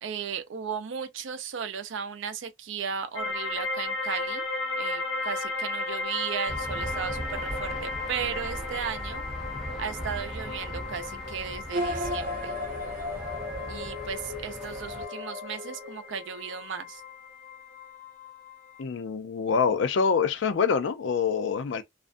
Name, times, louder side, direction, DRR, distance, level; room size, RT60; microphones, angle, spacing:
voice 1, 0.0-4.4 4.8-9.2 9.8-12.6 13.7-17.0, right 7 dB, 75° right, 0.5 m, -35 dB
sound 1, 3.1-18.8, left 3 dB, 85° left, 1.0 m, -36 dB
Aircraft / Engine, 6.5-15.0, equal, 5° right, 0.6 m, -39 dB
sound 2, 11.7-16.5, left 1 dB, 45° right, 0.7 m, -35 dB
voice 2, 18.8-21.8, left 6 dB, 70° left, 0.4 m, -25 dB
2.4 x 2.1 x 2.5 m
head